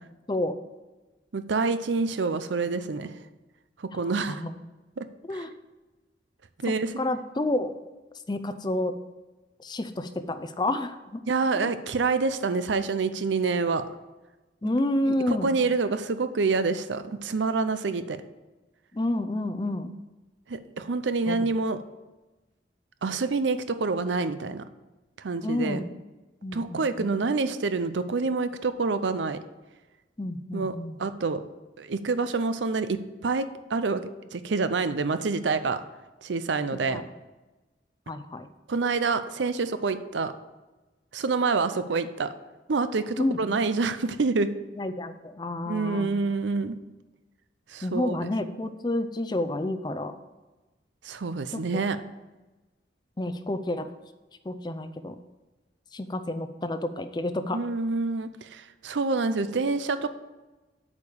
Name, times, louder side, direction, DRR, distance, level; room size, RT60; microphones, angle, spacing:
voice 1, 1.3-3.1 3.8-4.4 5.0-5.1 5.3-5.4 6.6-6.9 11.3-13.8 15.1-18.2 20.5-21.8 23.0-24.6 25.2-25.8 26.5-29.4 30.5-31.4 31.8-35.8 36.2-37.0 38.7-40.3 41.1-42.3 42.7-44.6 45.7-46.8 47.7-48.2 51.0-52.0 57.5-60.1, right 4 dB, 85° right, 12 dB, 0.6 m, -27 dB
voice 2, 7.0-7.8 8.3-8.9 9.6-11.2 11.5-11.7 14.6-15.6 18.9-19.9 21.3-21.4 25.4-25.9 26.4-27.1 30.2-31.0 36.9-37.0 38.1-38.5 43.2-43.4 44.7-46.1 47.8-50.2 51.5-51.8 53.2-53.9 54.4-55.2 55.9-57.6, left 1 dB, 25° left, 10 dB, 0.5 m, -29 dB
8.4 x 4.9 x 7.0 m, 1.2 s
head